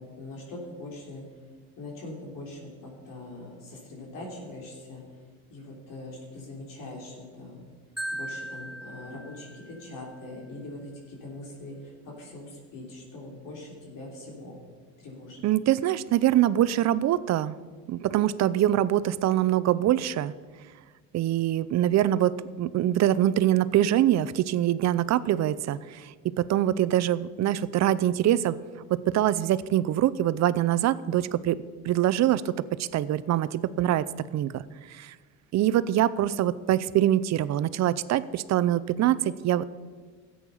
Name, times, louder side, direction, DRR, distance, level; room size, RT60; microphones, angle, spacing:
voice 1, 0.2-1.2 1.8-5.0 5.5-7.7 8.1-14.6 15.0-15.4, left 2 dB, 60° left, -1 dB, 3.4 m, -42 dB
Marimba xylophone, 8.0-10.0, right 1 dB, ahead, 1.0 m, -38 dB
voice 2, 15.4-17.6 17.9-20.3 21.1-28.6 28.9-32.5 32.8-34.6 34.9-35.1 35.5-39.6, right 12 dB, 45° right, 17 dB, 0.6 m, -24 dB
13.5 x 8.7 x 5.5 m, 1.5 s
supercardioid pair, 100°, 37 cm